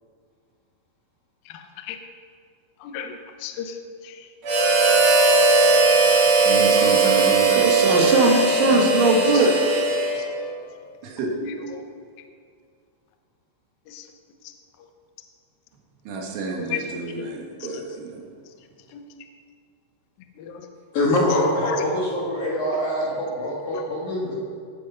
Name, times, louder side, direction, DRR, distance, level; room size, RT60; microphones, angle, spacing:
voice 1, 1.5-2.0 2.8-3.8 4.0-4.3 6.8-7.7 8.6-8.7 9.3-9.5 11.4-11.9 13.9-14.1 16.5-16.9 17.6-17.8 18.9-19.0 20.4-20.7 21.6-21.9 23.7-23.8, left 7 dB, 80° left, 5 dB, 2.0 m, -34 dB
Harmonica, 4.4-10.5, right 3 dB, 45° right, 2.5 m, -18 dB
voice 2, 6.4-9.6 11.0-11.3 16.1-18.2, right 3 dB, 75° right, 0 dB, 4.0 m, -23 dB
voice 3, 20.9-24.3, left 1 dB, 60° left, -4 dB, 2.2 m, -24 dB
17.5 x 7.7 x 5.6 m, 2.1 s
omnidirectional pair, 5.6 m